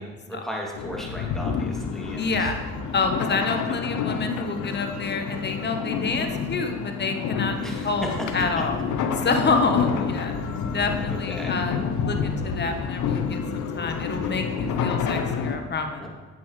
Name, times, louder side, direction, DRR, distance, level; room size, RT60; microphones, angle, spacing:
voice 1, 0.0-2.5 3.7-3.8 7.6-8.3 11.1-11.5 16.0-16.1, equal, ahead, -2 dB, 2.6 m, -36 dB
sound 1, 0.7-15.6, left 6 dB, 80° left, 0.8 m, -29 dB
voice 2, 2.1-2.6 2.9-8.8 9.2-10.3 10.7-11.7 12.0-16.1, left 4 dB, 35° left, 6 dB, 1.1 m, -27 dB
9.4 x 8.5 x 3.2 m, 1.3 s
supercardioid pair, 65°, 30 cm